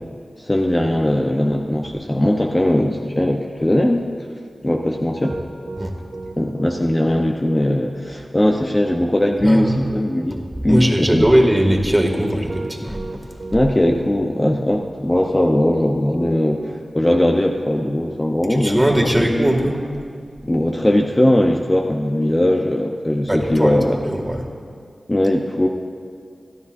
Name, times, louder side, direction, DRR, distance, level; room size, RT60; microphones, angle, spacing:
voice 1, 0.4-4.0 4.6-5.4 6.4-11.3 13.5-16.6 16.9-19.2 20.4-24.0 25.1-25.7, left 1 dB, 25° left, 0 dB, 0.9 m, -19 dB
Piano, 5.2-19.1, right 3 dB, 85° right, 1.8 m, -36 dB
voice 2, 9.4-9.7 10.7-13.0 18.6-19.8 23.3-23.8 24.0-24.5, equal, 15° right, 1 dB, 2.4 m, -18 dB
25.0 x 12.5 x 2.7 m, 2.2 s
cardioid pair, 50°, 0 cm